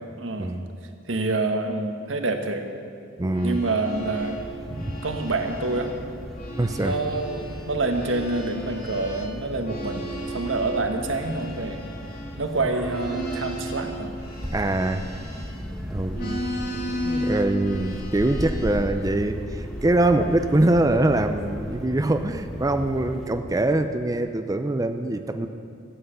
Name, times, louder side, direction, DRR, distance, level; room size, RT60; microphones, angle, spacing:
voice 1, 0.2-0.5 1.1-2.7 3.4-4.4 5.0-5.9 6.8-11.8 12.4-14.2 16.1-16.5, right 2 dB, 90° right, 5 dB, 1.2 m, -27 dB
sound 1, 3.2-6.0 6.3-15.7 16.1-18.9 19.5-20.8, right 1 dB, 50° left, 2.4 m, -35 dB
voice 2, 3.2-3.6 4.7-5.0 6.6-7.0 14.5-15.0 15.9-16.2 17.0-25.5, right 1 dB, 20° right, 7 dB, 0.5 m, -23 dB
sound 2, 3.9-23.3, equal, ahead, 1.4 m, -37 dB
14.0 x 8.1 x 7.8 m, 2.5 s
head